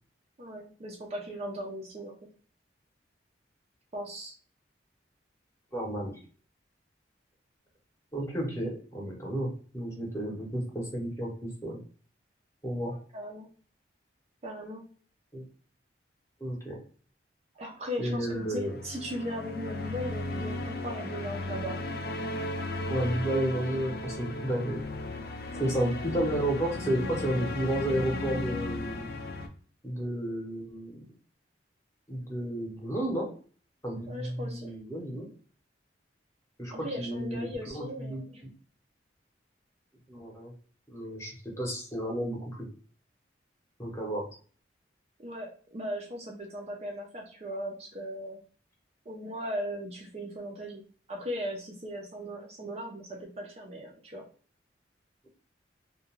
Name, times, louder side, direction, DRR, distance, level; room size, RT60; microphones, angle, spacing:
voice 1, 0.4-2.2 3.9-4.3 13.1-13.5 14.4-14.8 17.6-21.8 25.5-25.7 34.1-34.7 36.7-38.4 45.2-48.4 49.1-50.8 51.1-54.2, equal, 35° right, 0 dB, 0.4 m, -38 dB
voice 2, 5.7-6.2 8.1-11.8 12.6-12.9 15.3-15.4 16.4-16.8 18.0-18.8 22.9-24.8 25.6-29.1 29.8-31.0 32.1-33.3 33.8-35.3 36.6-38.5 40.1-40.5 40.9-42.7 43.8-44.3, right 1 dB, 15° left, -2 dB, 0.8 m, -32 dB
sound 1, 18.4-29.5, left 2 dB, 55° left, 0.4 m, -35 dB
2.4 x 2.2 x 3.0 m, 0.43 s
head